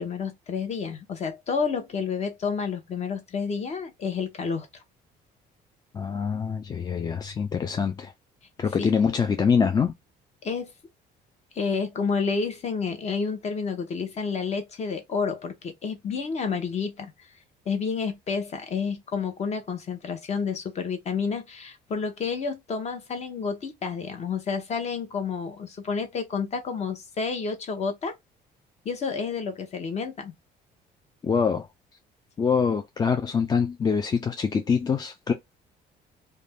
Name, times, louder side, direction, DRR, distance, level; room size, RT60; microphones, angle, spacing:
voice 1, 0.0-4.8 8.8-8.9 10.4-10.7 11.5-17.3 17.7-28.1 28.8-30.3, left 5 dB, 40° left, 0.8 m, -30 dB
voice 2, 5.9-8.1 8.6-9.9 31.2-31.7 32.4-35.3, left 6 dB, 25° left, 0.3 m, -24 dB
2.5 x 2.2 x 3.3 m
cardioid pair, 110°, 17 cm